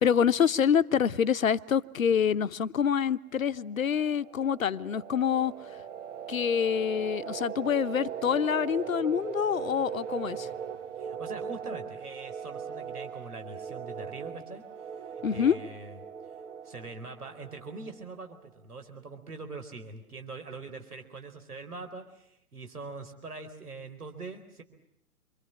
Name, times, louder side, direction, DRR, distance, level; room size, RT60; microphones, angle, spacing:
voice 1, 0.0-5.5 6.3-10.5 15.2-15.6, left 8 dB, 60° left, 1.0 m, -26 dB
sound 1, 3.7-18.3, right 8 dB, 50° right, 1.9 m, -39 dB
voice 2, 11.0-14.6 14.9-16.3 16.6-24.6, right 3 dB, 75° right, 4.3 m, -43 dB
27.5 x 24.5 x 7.5 m
figure-of-eight pair, 120°, 46 cm